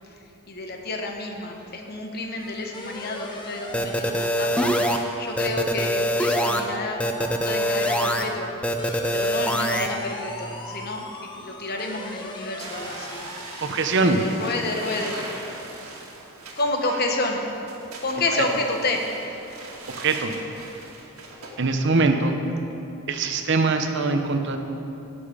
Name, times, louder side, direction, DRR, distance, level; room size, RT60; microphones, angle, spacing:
voice 1, 0.5-8.5 9.1-11.0 11.4-13.3 14.0-15.3 16.6-17.5 18.0-19.0, left 2 dB, 45° left, 2 dB, 1.1 m, -29 dB
sound 1, 2.4-14.3, left 1 dB, 20° left, 0.9 m, -39 dB
sound 2, 3.7-5.0 5.4-6.6 7.0-8.2 8.6-9.9, equal, 5° left, 0.5 m, -23 dB
sound 3, 12.6-21.6, right 3 dB, 75° right, 1.8 m, -40 dB
voice 2, 13.6-14.2 20.0-20.4 21.6-22.4 23.1-24.6, right 3 dB, 55° right, 6 dB, 0.9 m, -22 dB
17.0 x 7.3 x 5.0 m, 2.9 s
head